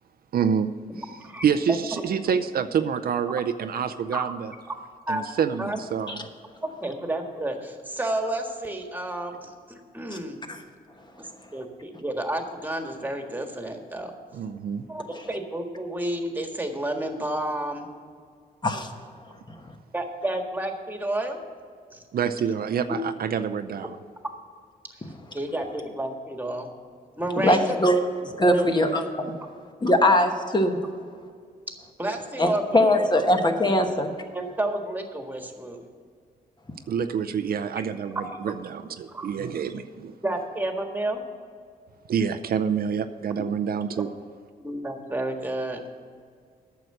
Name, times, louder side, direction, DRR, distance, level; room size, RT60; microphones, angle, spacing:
voice 1, 0.3-0.7 1.4-4.5 5.1-6.2 14.3-14.8 22.1-24.0 36.9-40.1 42.1-44.1, right 7 dB, 65° right, 9 dB, 0.5 m, -27 dB
voice 2, 6.6-10.4 11.2-14.1 14.9-17.9 19.9-21.4 21.9-22.0 22.9-23.0 24.9-26.7 27.2-27.8 28.4-28.7 32.0-32.9 34.3-35.8 37.7-37.8 38.1-38.5 39.1-39.3 40.2-41.2 43.9-44.0 44.6-45.8, right 1 dB, 10° right, 4 dB, 1.6 m, -31 dB
voice 3, 27.4-28.0 28.4-29.3 29.8-30.8 32.4-34.1, left 1 dB, 25° left, 5 dB, 1.2 m, -21 dB
9.3 x 6.7 x 7.9 m, 2.1 s
cardioid pair, 85°, 17 cm